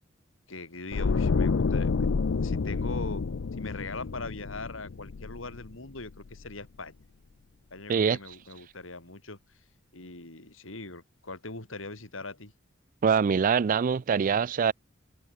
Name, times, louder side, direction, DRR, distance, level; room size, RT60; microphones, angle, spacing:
voice 1, 0.5-2.1 2.4-3.2 3.6-7.0 7.7-9.4 9.9-12.5, left 3 dB, 90° left, 4.1 m, -41 dB
sound 1, 0.9-6.0 6.3-6.5, left 4 dB, 70° left, 0.5 m, -29 dB
voice 2, 13.0-14.7, right 6 dB, 45° right, 0.4 m, -24 dB
head